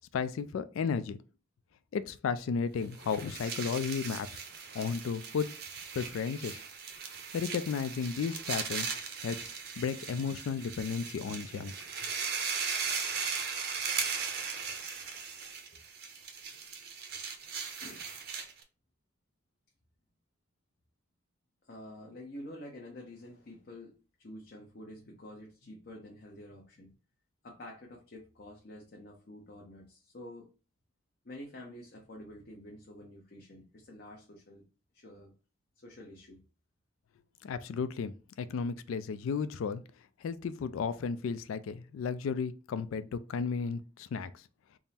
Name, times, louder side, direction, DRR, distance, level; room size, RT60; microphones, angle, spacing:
voice 1, 0.1-1.2 1.9-4.4 4.7-5.5 5.9-6.6 7.3-8.9 9.2-9.4 9.8-11.7 37.4-39.8 40.2-44.3, left 6 dB, 85° left, 0.3 m, -33 dB
sound 1, 2.8-18.6, right 6 dB, 50° right, 0.6 m, -38 dB
voice 2, 17.7-18.1 21.7-26.9 27.4-30.5 31.2-34.6 34.9-35.3 35.8-36.4, left 1 dB, 50° left, 0.7 m, -48 dB
3.6 x 2.0 x 4.1 m
head